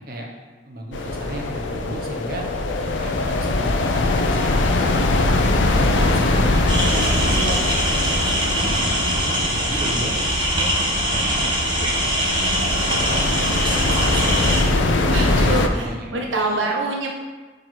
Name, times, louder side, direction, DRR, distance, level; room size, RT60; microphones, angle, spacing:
voice 1, 0.6-2.4 3.0-5.3 5.7-10.3 10.6-11.9 12.6-16.7, right 1 dB, 50° right, 0 dB, 1.1 m, -34 dB
sound 1, 0.9-15.7, left 2 dB, 90° left, 0.6 m, -22 dB
voice 2, 6.3-6.9 7.3-7.6 15.1-17.1, right 2 dB, 85° right, 1 dB, 0.7 m, -27 dB
sound 2, 6.7-14.6, right 1 dB, 25° right, 1.2 m, -22 dB
5.1 x 4.6 x 6.0 m, 1.3 s
head